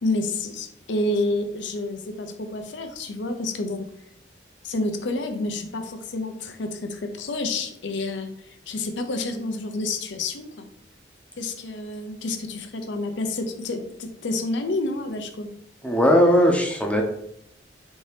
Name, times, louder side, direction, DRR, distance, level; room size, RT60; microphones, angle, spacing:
voice 1, 0.0-3.9 4.6-10.7 11.4-15.5, left 2 dB, 75° left, 7 dB, 0.6 m, -29 dB
voice 2, 15.8-17.0, equal, 5° left, 1 dB, 0.6 m, -18 dB
4.4 x 2.7 x 3.3 m, 0.72 s
head